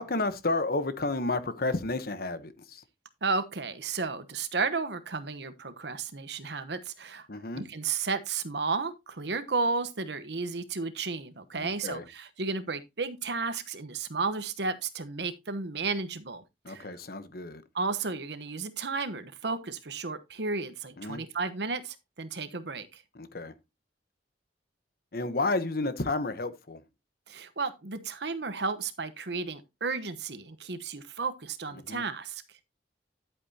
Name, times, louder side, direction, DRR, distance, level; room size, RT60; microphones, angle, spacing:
voice 1, 0.0-2.8 7.3-7.6 11.6-12.0 16.6-17.6 21.0-21.2 23.1-23.5 25.1-26.8 31.9-32.0, left 2 dB, 55° left, 1.0 m, -31 dB
voice 2, 3.2-7.3 7.5-16.9 17.7-23.0 27.3-32.4, right 4 dB, 70° right, 1.0 m, -33 dB
11.0 x 8.3 x 2.8 m
head